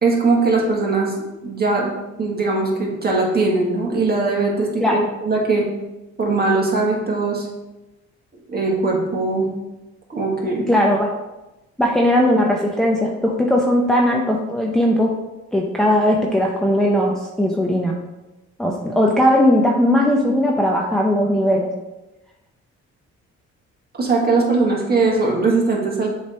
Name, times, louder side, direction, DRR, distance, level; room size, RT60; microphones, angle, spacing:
voice 1, 0.0-1.1 1.4-1.9 2.2-5.0 5.3-5.7 6.2-7.5 8.5-9.5 10.1-10.7 24.0-26.1, right 3 dB, 30° right, -2 dB, 1.9 m, -20 dB
voice 2, 10.7-11.1 11.8-15.2 15.5-18.0 18.6-21.7, left 1 dB, ahead, -2 dB, 0.7 m, -18 dB
7.1 x 3.3 x 4.4 m, 1.0 s
cardioid pair, 90°, 30 cm